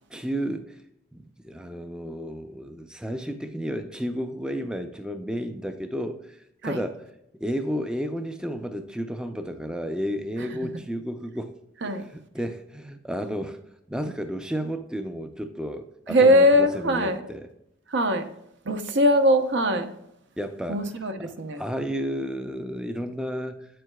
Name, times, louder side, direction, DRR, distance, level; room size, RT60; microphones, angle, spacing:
voice 1, 0.1-0.8 1.1-7.0 7.3-11.6 11.8-13.6 13.9-17.5 20.4-20.8 21.2-23.7, equal, 5° right, 8 dB, 0.4 m, -32 dB
voice 2, 16.1-17.2 17.9-18.3 18.7-19.9 20.7-21.6, equal, 65° right, 7 dB, 0.8 m, -21 dB
8.8 x 7.6 x 2.2 m, 0.80 s
head